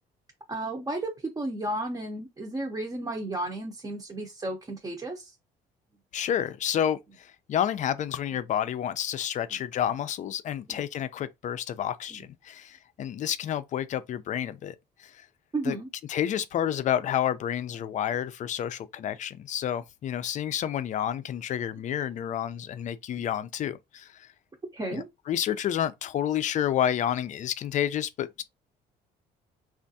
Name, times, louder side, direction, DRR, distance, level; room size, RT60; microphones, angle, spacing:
voice 1, 0.5-5.3 10.7-10.8 12.1-12.2 15.5-15.9 23.2-23.3 24.7-25.1, right 2 dB, 20° right, 0.7 m, -33 dB
voice 2, 6.1-14.7 15.0-15.1 15.6-15.8 16.1-24.1 24.9-28.4, left 10 dB, 45° left, 0.4 m, -30 dB
3.4 x 2.4 x 2.6 m
cardioid pair, 110°, 17 cm